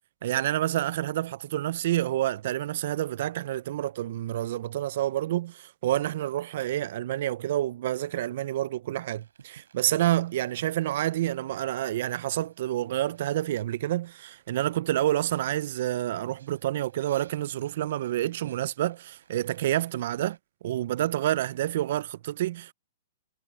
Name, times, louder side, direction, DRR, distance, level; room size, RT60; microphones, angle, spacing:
voice 1, 0.2-20.4 20.6-22.7, right 13 dB, 55° right, 0.3 m, -28 dB
sound 1, 9.2-14.6 14.9-20.4, right 7 dB, 90° right, 5.6 m, -59 dB
hypercardioid pair, 160°, 0 cm